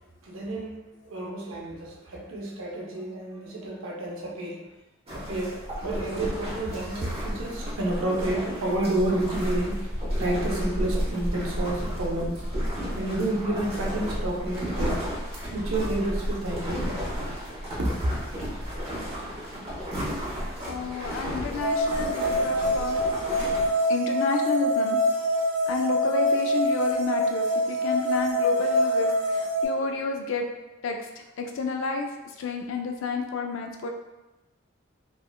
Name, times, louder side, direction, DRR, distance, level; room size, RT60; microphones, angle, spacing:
voice 1, 0.2-4.6 5.1-12.4 13.0-15.0 15.4-16.9 17.8-17.9, right 1 dB, 90° right, -1 dB, 0.6 m, -30 dB
sound 1, 5.1-23.7, equal, 30° right, 0.8 m, -32 dB
voice 2, 20.7-23.0 23.9-25.0 25.7-30.5 30.8-32.1 32.4-33.9, left 4 dB, 70° left, 3 dB, 0.3 m, -30 dB
sound 2, 21.6-29.6, equal, 70° right, 1.1 m, -25 dB
3.5 x 2.1 x 2.2 m, 1.0 s
head